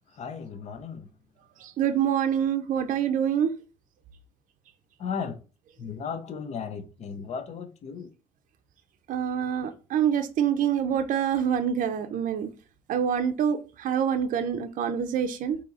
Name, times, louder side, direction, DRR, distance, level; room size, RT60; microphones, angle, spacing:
voice 1, 0.2-1.1 5.0-5.4 5.8-8.1, left 6 dB, 50° left, 0.6 m, -35 dB
voice 2, 1.6-3.5 9.1-12.5 12.9-15.6, right 8 dB, 65° right, 0.5 m, -26 dB
3.7 x 2.8 x 4.0 m
cardioid pair, 130°, 15 cm